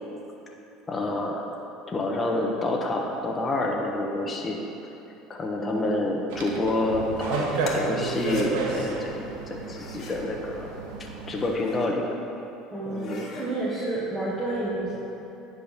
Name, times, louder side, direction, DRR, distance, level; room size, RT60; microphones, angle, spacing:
voice 1, 0.9-1.5 1.9-4.6 5.3-10.7 11.3-12.0 12.8-13.3, left 2 dB, 25° left, 0 dB, 1.1 m, -28 dB
voice 2, 5.6-6.0 12.7-15.0, right 2 dB, 10° right, -10 dB, 1.9 m, -30 dB
sound 1, 6.3-11.5, right 3 dB, 80° right, 1.2 m, -31 dB
sound 2, 7.6-8.5 9.6-10.2 11.2-11.9 12.4-12.5 12.8-13.5, left 3 dB, 50° left, 1.6 m, -42 dB
10.0 x 3.9 x 6.6 m, 2.9 s
supercardioid pair, 100°, 0 cm